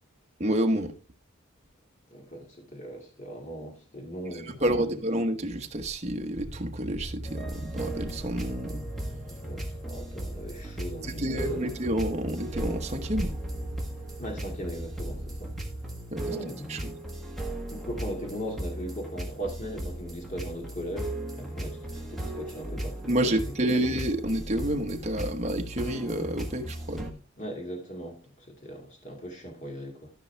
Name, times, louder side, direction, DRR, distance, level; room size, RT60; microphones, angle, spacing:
voice 1, 0.4-0.9 4.3-8.8 11.0-13.4 16.1-16.3 16.7-16.8 23.1-27.1, right 1 dB, 35° right, 1.1 m, -29 dB
voice 2, 2.1-4.9 9.3-11.7 14.2-15.5 16.2-16.9 17.7-23.2 23.6-23.8 27.4-30.1, equal, 35° left, 2.1 m, -39 dB
sound 1, 6.3-16.0, right 1 dB, 65° right, 1.9 m, -41 dB
sound 2, 7.2-27.1, right 1 dB, ahead, 1.4 m, -37 dB
13.0 x 5.6 x 3.3 m
head